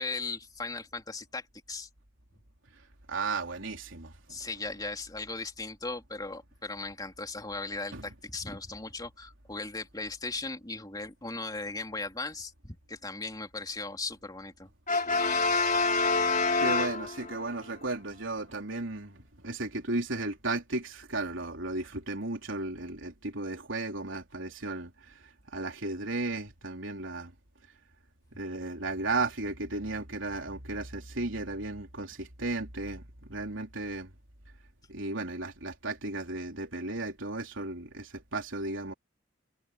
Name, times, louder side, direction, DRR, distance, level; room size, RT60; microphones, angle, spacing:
voice 1, 0.0-1.9 4.3-14.7, left 3 dB, 20° left, 3.3 m, -38 dB
voice 2, 3.1-4.5 7.9-8.0 16.6-27.3 28.3-34.1 34.9-38.9, right 2 dB, 80° right, 3.6 m, -35 dB
Brass instrument, 14.9-17.5, left 3 dB, 40° left, 3.0 m, -26 dB
head